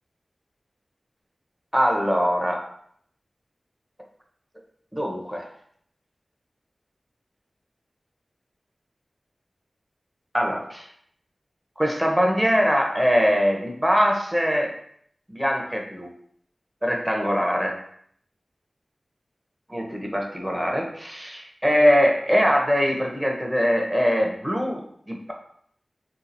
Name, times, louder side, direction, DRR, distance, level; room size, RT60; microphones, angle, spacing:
voice 1, 1.7-2.7 4.9-5.5 10.3-10.9 11.8-14.8 15.3-16.1 16.8-17.8 19.7-24.8 25.1-25.3, equal, 5° right, 0 dB, 0.8 m, -22 dB
3.7 x 2.8 x 2.6 m, 0.65 s
wide cardioid pair, 50°, 0 cm